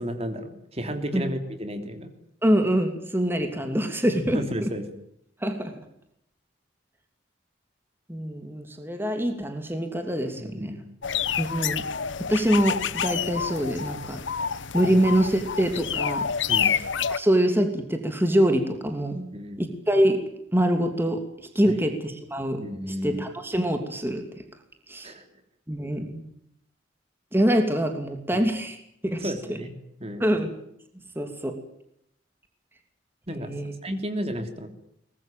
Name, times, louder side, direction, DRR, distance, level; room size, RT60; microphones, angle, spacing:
voice 1, 0.0-2.1 4.3-4.9 10.4-10.9 14.9-15.0 16.5-16.7 19.3-19.6 21.7-21.8 22.6-23.3 25.0-25.2 28.3-28.4 29.2-29.7 30.0-30.4 33.3-33.5 33.8-34.7, equal, 35° right, 8 dB, 3.1 m, -33 dB
voice 2, 2.4-4.7 5.4-5.7 8.1-10.7 11.4-11.9 12.2-14.2 14.7-16.3 16.5-16.8 17.1-19.3 19.6-20.2 20.5-24.2 24.9-25.1 25.7-26.2 27.3-28.8 29.0-29.6 30.2-30.5 31.2-31.6 33.3-33.7, equal, 10° right, 6 dB, 2.8 m, -25 dB
sound 1, 11.0-17.2, left 7 dB, 80° left, 1.0 m, -28 dB
23.0 x 21.0 x 9.1 m, 0.73 s
head